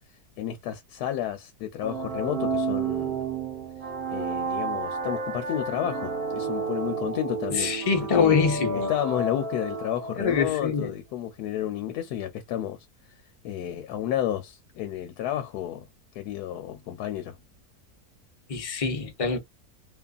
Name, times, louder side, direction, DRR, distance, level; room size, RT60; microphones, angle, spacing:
voice 1, 0.4-3.2 4.1-7.7 8.2-8.6 8.9-12.8 13.4-15.9 16.1-17.4, left 11 dB, 80° left, 1.1 m, -31 dB
sound 1, 1.8-10.4, right 4 dB, 70° right, 1.4 m, -31 dB
voice 2, 7.5-8.9 10.2-10.9 18.5-19.4, left 5 dB, 35° left, 0.5 m, -24 dB
2.7 x 2.4 x 2.3 m
omnidirectional pair, 1.7 m